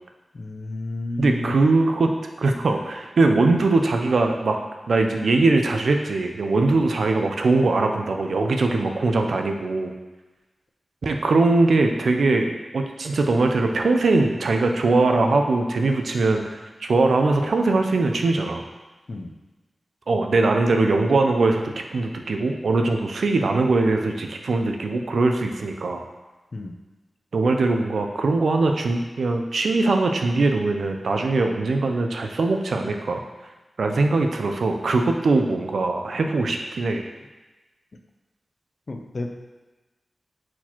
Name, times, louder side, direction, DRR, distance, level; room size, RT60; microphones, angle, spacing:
voice 1, 0.3-1.6 3.5-3.7 6.7-6.9 19.1-19.3 26.5-26.7 38.9-39.3, left 2 dB, 55° left, 3 dB, 0.5 m, -31 dB
voice 2, 1.2-2.1 2.4-4.6 4.9-9.9 11.0-18.6 20.1-26.0 27.3-33.2 33.8-37.0, right 3 dB, 80° right, 4 dB, 0.4 m, -21 dB
4.3 x 2.9 x 4.2 m, 1.2 s
wide cardioid pair, 85°, 0 cm